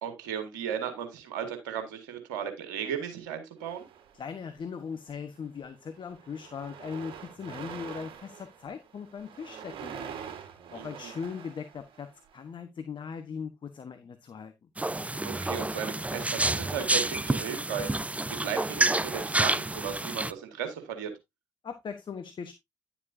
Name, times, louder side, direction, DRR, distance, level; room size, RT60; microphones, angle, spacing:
voice 1, 0.0-3.9 10.8-11.1 15.2-21.1, right 8 dB, 85° right, 1.9 m, -36 dB
sound 1, 3.6-4.6 5.4-5.6 5.8-12.3, right 8 dB, 65° right, 4.0 m, -45 dB
voice 2, 4.1-10.1 10.7-14.5 21.6-22.5, left 6 dB, 50° left, 1.2 m, -39 dB
sound 2, 14.8-20.3, right 2 dB, 15° right, 0.6 m, -29 dB
11.0 x 7.2 x 2.7 m
hypercardioid pair, 40°, 10 cm